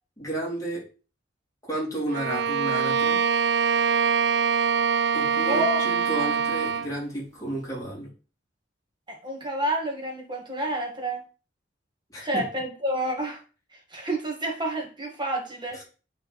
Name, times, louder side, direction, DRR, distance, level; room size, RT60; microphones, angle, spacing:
voice 1, 0.2-0.8 1.7-3.2 5.1-8.1 12.1-12.4 15.8-15.9, right 1 dB, 15° left, -5 dB, 3.8 m, -32 dB
Bowed string instrument, 2.1-7.0, right 6 dB, 60° right, 0.4 m, -24 dB
voice 2, 5.5-5.8 9.1-11.2 12.2-13.4 13.9-15.8, right 1 dB, 25° right, 1 dB, 2.0 m, -29 dB
9.0 x 4.2 x 4.3 m, 0.35 s
head